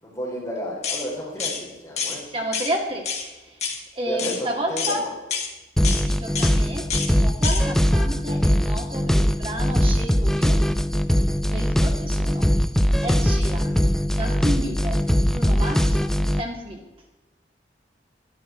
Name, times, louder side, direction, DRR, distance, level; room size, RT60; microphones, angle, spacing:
voice 1, 0.0-2.2 4.1-5.1, equal, 20° left, -5 dB, 4.2 m, -31 dB
sound 1, 0.8-1.0 1.4-1.6 2.0-2.2 2.5-2.7 3.1-3.2 3.6-3.8 4.2-4.4 4.8-5.0 5.3-5.5 5.8-6.0 6.4-6.5 6.9-7.1 7.4-7.6, left 6 dB, 40° left, 1.9 m, -27 dB
voice 2, 2.0-3.7 3.9-5.0 6.0-10.6 11.5-12.5 13.0-13.8 14.1-15.0 15.2-16.8, right 1 dB, 30° right, 0 dB, 2.3 m, -32 dB
sound 2, 5.8-16.4, equal, 5° left, 0.4 m, -21 dB
11.5 x 11.5 x 4.5 m, 1.1 s
head